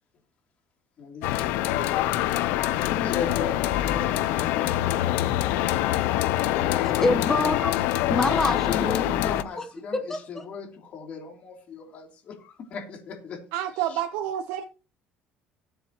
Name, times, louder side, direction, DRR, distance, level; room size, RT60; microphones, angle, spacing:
voice 1, 1.0-1.5 2.4-5.4 6.6-7.5 8.5-13.4 13.9-14.0, left 6 dB, 40° left, 3.1 m, -37 dB
sound 1, 1.2-9.4, left 14 dB, 75° left, 0.7 m, -25 dB
voice 2, 6.8-9.6 10.1-10.2, left 2 dB, 10° left, 1.3 m, -27 dB
voice 3, 13.5-14.6, right 11 dB, 90° right, 0.9 m, -29 dB
18.5 x 7.8 x 3.0 m
cardioid pair, 155°, 3 cm